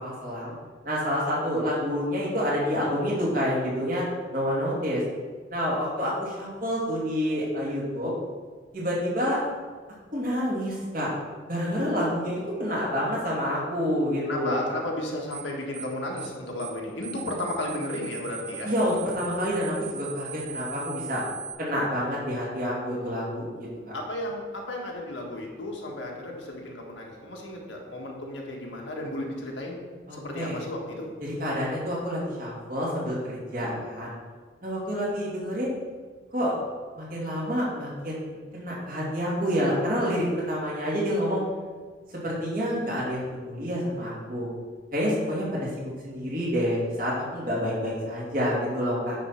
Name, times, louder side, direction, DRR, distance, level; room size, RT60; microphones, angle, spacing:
voice 1, 0.0-0.5 0.8-4.0 4.3-5.0 5.5-8.1 8.7-9.4 10.1-11.1 11.5-14.8 17.1-17.3 18.6-21.2 21.6-23.5 23.9-24.0 30.1-30.6 31.2-34.1 34.6-35.7 36.3-36.5 36.9-41.4 42.2-44.5 44.9-49.1, equal, 45° right, -5 dB, 2.6 m, -28 dB
voice 2, 14.3-18.7 23.9-29.8 30.1-31.1, left 1 dB, 80° left, -1 dB, 1.7 m, -34 dB
sound 1, 15.3-15.5 15.7-15.9 16.2-16.3 16.6-16.8 17.0-21.5, right 7 dB, 25° right, 2.2 m, -40 dB
9.4 x 4.5 x 5.9 m, 1.5 s
head